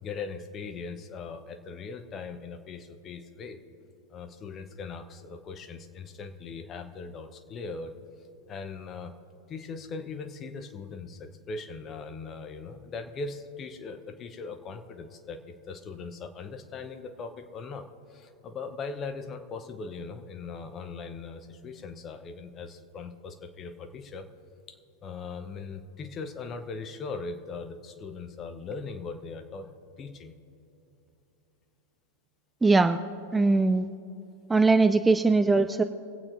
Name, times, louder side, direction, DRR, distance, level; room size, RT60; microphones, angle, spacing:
voice 1, 0.0-3.6 4.1-7.9 8.5-9.1 9.5-24.3 24.7-29.7 30.0-30.3, left 4 dB, 30° left, 8 dB, 0.8 m, -40 dB
voice 2, 32.6-33.0 33.3-33.9 34.5-35.8, right 3 dB, 10° right, 8 dB, 0.3 m, -21 dB
25.5 x 8.5 x 2.6 m, 2.9 s
figure-of-eight pair, 90°, 0 cm